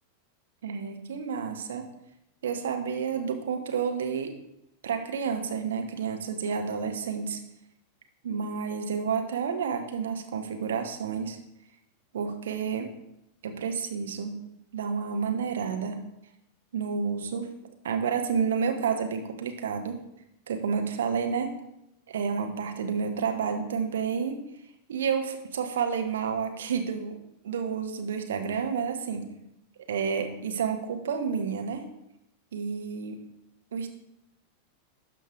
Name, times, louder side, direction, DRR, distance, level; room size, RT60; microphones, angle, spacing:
voice 1, 0.6-1.9 2.4-4.3 4.8-7.4 8.2-11.4 12.1-12.9 13.4-14.4 14.7-16.0 16.7-17.5 17.8-20.0 20.5-21.6 22.1-24.4 24.9-27.2 27.4-29.3 29.9-31.8 32.5-33.2 33.7-33.9, right 6 dB, 60° right, 6 dB, 1.0 m, -30 dB
12.0 x 5.2 x 3.7 m, 0.83 s
figure-of-eight pair, 90°, 0 cm